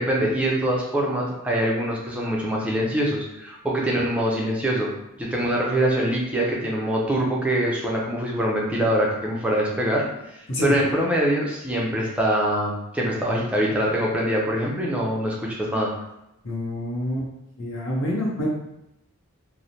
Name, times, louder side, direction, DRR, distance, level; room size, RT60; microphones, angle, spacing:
voice 1, 0.0-4.9 5.2-10.1 10.3-15.9, right 1 dB, 5° right, -3 dB, 0.4 m, -24 dB
voice 2, 16.4-17.3 17.6-18.5, left 1 dB, 60° left, -4 dB, 0.8 m, -27 dB
3.0 x 2.0 x 2.6 m, 0.85 s
head